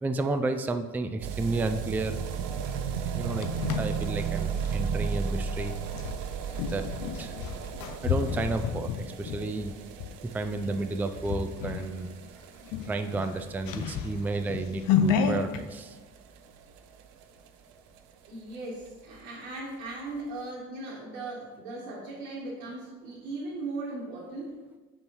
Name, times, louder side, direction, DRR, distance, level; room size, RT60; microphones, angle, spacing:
voice 1, 0.0-2.2 3.1-3.5 3.8-5.7 6.7-6.9 7.2-7.3 8.0-9.7 10.3-12.1 12.9-16.0, right 2 dB, 5° right, 8 dB, 0.3 m, -31 dB
sound 1, 1.2-18.0 18.2-18.3 18.5-18.6 18.9-19.0 19.2-19.3 20.0-20.1, right 7 dB, 65° right, 0.6 m, -36 dB
sound 2, 3.0-4.9 5.9-10.1 10.6-10.9 11.2-11.9 12.2-12.3 12.6-15.6, left 7 dB, 60° left, 0.7 m, -31 dB
voice 2, 18.3-24.6, right 2 dB, 85° right, -5 dB, 1.4 m, -38 dB
7.1 x 5.3 x 3.0 m, 1.3 s
hypercardioid pair, 65°, 38 cm